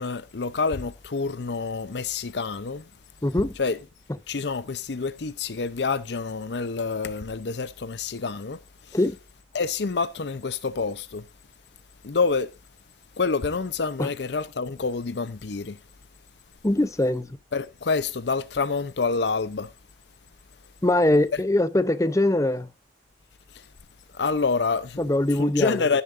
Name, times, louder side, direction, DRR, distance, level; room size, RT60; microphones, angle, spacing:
voice 1, 0.0-2.8 3.6-3.8 4.3-8.6 8.9-9.0 9.5-11.2 12.0-12.5 13.2-15.8 17.5-19.7 24.1-25.0 25.4-26.0, left 4 dB, 70° left, 0.6 m, -27 dB
voice 2, 3.2-3.6 8.9-9.2 14.0-14.1 16.6-17.4 20.8-22.7 25.0-25.8, left 1 dB, 15° left, 0.6 m, -22 dB
15.0 x 7.0 x 2.5 m
head